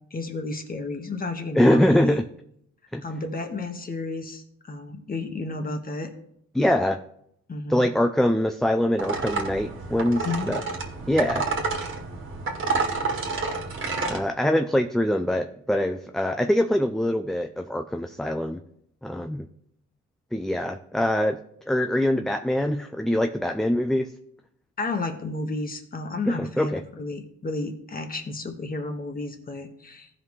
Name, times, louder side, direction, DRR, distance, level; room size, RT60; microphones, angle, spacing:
voice 1, 0.1-2.2 3.0-6.1 7.5-7.9 10.2-10.5 24.8-30.1, left 3 dB, 30° left, 5 dB, 1.5 m, -32 dB
voice 2, 1.5-2.2 2.9-3.0 6.5-7.0 7.7-10.6 11.1-11.4 14.1-18.6 19.0-19.5 20.3-21.4 21.7-24.1 26.3-26.8, left 1 dB, ahead, 6 dB, 0.4 m, -23 dB
sound 1, 9.0-14.2, right 4 dB, 40° right, 1.8 m, -29 dB
15.0 x 5.4 x 3.2 m, 0.73 s
cardioid pair, 90°, 30 cm